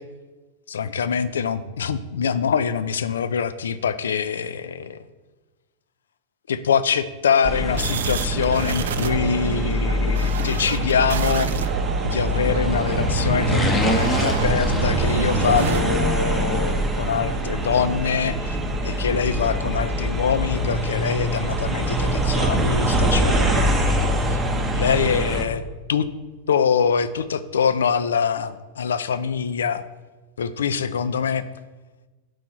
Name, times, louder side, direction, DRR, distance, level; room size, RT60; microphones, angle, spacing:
voice 1, 0.7-5.0 6.5-11.5 12.0-18.6 18.8-24.4 24.7-25.6 25.9-26.1 26.5-29.8 30.4-31.5, left 7 dB, 65° left, 13 dB, 0.3 m, -24 dB
sound 1, 7.4-25.4, right 1 dB, 15° right, 0.7 m, -24 dB
sound 2, 7.7-15.8, right 6 dB, 65° right, 0.3 m, -29 dB
sound 3, 12.2-15.6 15.9-16.0, left 2 dB, 15° left, 0.7 m, -27 dB
4.7 x 4.2 x 5.8 m, 1.2 s
figure-of-eight pair, 90°, 0 cm